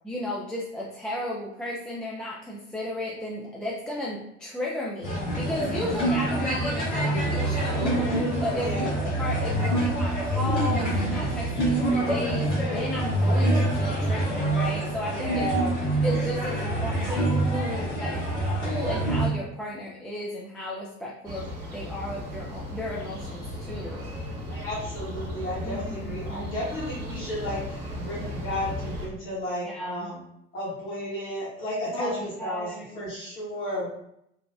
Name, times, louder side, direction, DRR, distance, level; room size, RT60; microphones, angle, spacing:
voice 1, 0.0-8.9 9.2-15.5 16.0-18.4 18.6-24.1 25.6-26.5 29.6-30.1 31.9-33.1, left 1 dB, 5° left, -5 dB, 0.3 m, -34 dB
sound 1, 5.0-19.3, right 1 dB, 70° left, 1.1 m, -26 dB
voice 2, 5.6-6.5 8.6-8.9 15.1-15.7 24.5-30.2 30.5-33.9, equal, 35° left, -7 dB, 1.0 m, -33 dB
sound 2, 21.2-29.1, left 1 dB, 45° right, 0.9 m, -36 dB
3.1 x 2.2 x 2.3 m, 0.77 s
figure-of-eight pair, 55°, 36 cm